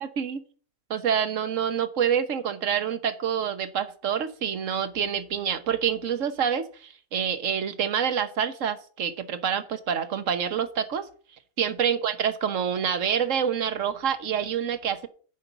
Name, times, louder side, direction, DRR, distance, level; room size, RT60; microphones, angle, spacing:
voice 1, 0.0-0.4 0.9-11.1 11.6-15.1, right 8 dB, 70° right, 11 dB, 1.4 m, -27 dB
10.0 x 5.4 x 7.0 m, 0.43 s
omnidirectional pair, 1.4 m